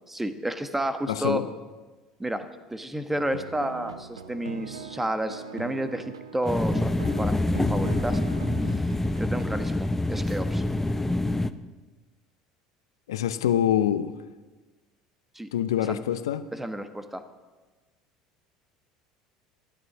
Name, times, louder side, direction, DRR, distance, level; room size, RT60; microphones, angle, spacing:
voice 1, 0.1-1.4 2.2-8.5 9.2-10.6 15.3-15.5 15.9-16.0 16.5-17.2, right 1 dB, 10° right, 9 dB, 1.3 m, -31 dB
voice 2, 1.1-1.5 13.1-14.1 15.5-16.4, left 10 dB, 75° left, 13 dB, 0.6 m, -25 dB
sound 1, 3.1-9.5, right 7 dB, 80° right, 0.8 m, -41 dB
sound 2, 6.4-11.5, left 2 dB, 10° left, 0.7 m, -26 dB
13.5 x 12.5 x 6.1 m, 1.3 s
figure-of-eight pair, 70°, 3 cm